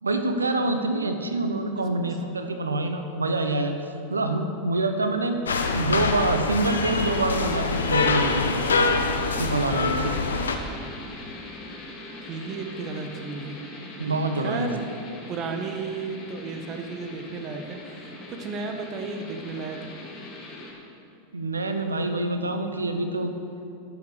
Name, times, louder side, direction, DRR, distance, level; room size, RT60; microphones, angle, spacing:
voice 1, 0.0-3.7 4.1-5.4 5.7-8.6 9.2-10.1 14.0-14.7 21.3-23.4, right 2 dB, 90° right, 7 dB, 0.9 m, -26 dB
sound 1, 5.5-10.6, left 4 dB, 80° left, 0.8 m, -25 dB
sound 2, 6.5-20.7, left 2 dB, 35° left, 2.6 m, -41 dB
voice 2, 12.2-13.6 14.3-14.8 15.3-19.9, right 4 dB, 40° right, 4 dB, 1.4 m, -34 dB
12.0 x 7.2 x 6.4 m, 2.7 s
hypercardioid pair, 90°, 0 cm